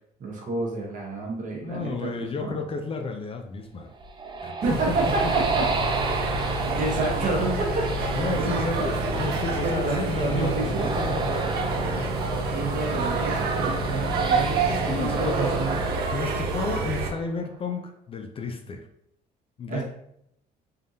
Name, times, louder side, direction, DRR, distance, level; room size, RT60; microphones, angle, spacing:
voice 1, 0.2-2.6 4.6-6.0 6.8-8.7 9.6-10.9 12.5-15.8 19.7-19.8, right 3 dB, 50° right, -1 dB, 1.3 m, -29 dB
voice 2, 1.6-3.9 4.4-5.0 5.2-5.3 8.1-12.1 14.7-15.5 16.1-18.9 19.6-19.8, left 4 dB, 35° left, 5 dB, 0.4 m, -32 dB
sound 1, 3.8-17.4, right 4 dB, 25° right, 0.6 m, -32 dB
sound 2, 4.6-17.1, right 3 dB, 70° right, 0.7 m, -28 dB
3.7 x 3.5 x 2.7 m, 0.76 s
cardioid pair, 110°, 17 cm